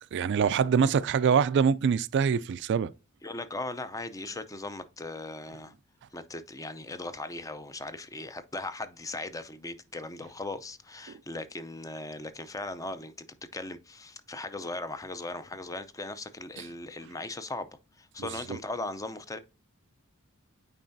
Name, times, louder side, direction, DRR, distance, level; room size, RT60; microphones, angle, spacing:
voice 1, 0.1-2.9 11.1-11.2 16.6-16.7 18.2-18.6, right 6 dB, 50° right, 0.3 m, -25 dB
voice 2, 3.2-5.7 6.1-13.3 13.5-17.7 18.0-19.4, left 2 dB, 15° left, 0.5 m, -38 dB
9.0 x 4.6 x 2.6 m
head